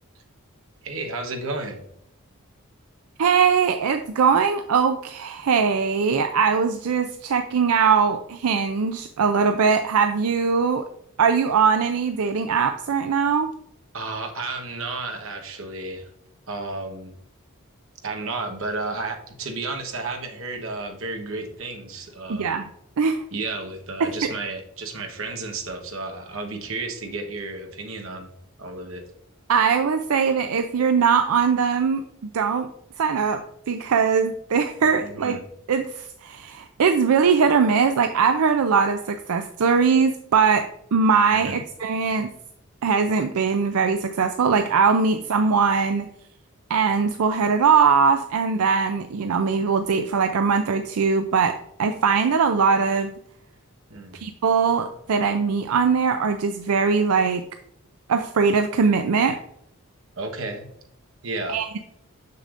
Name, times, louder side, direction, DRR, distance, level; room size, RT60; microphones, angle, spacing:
voice 1, 0.8-1.8 13.9-16.1 16.5-17.1 18.0-22.5 23.3-28.3 28.6-29.0 35.0-35.4 41.3-41.6 53.9-54.2 60.2-60.7 61.2-61.6, right 3 dB, 65° right, 4 dB, 1.1 m, -32 dB
voice 2, 3.2-10.9 11.2-13.5 22.3-22.7 23.0-23.2 24.0-24.3 29.5-32.0 32.3-32.7 33.0-35.4 35.7-42.3 42.8-46.1 46.7-53.1 54.1-57.4 58.1-59.4 61.5-61.8, right 5 dB, 85° right, 7 dB, 0.4 m, -21 dB
6.6 x 6.6 x 2.5 m, 0.71 s
head